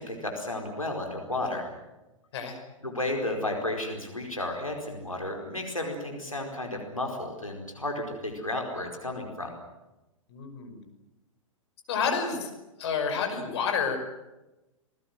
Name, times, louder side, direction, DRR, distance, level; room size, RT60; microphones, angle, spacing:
voice 1, 0.0-1.7 2.8-9.5, left 1 dB, 90° left, 2 dB, 4.8 m, -33 dB
voice 2, 10.3-10.8 11.9-12.5 12.8-14.0, left 6 dB, 55° left, 5 dB, 5.7 m, -29 dB
28.5 x 20.0 x 7.8 m, 1.0 s
figure-of-eight pair, 105°, 17 cm